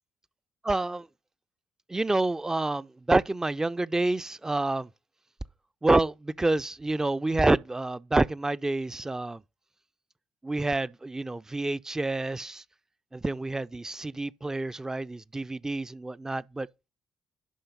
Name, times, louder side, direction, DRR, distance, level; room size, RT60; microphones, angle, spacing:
voice 1, 0.7-1.1 1.9-4.9 5.8-9.4 10.4-12.6 13.1-16.7, right 2 dB, 15° right, 0.4 m, -28 dB
10.0 x 5.6 x 5.5 m
figure-of-eight pair, 45°, 4 cm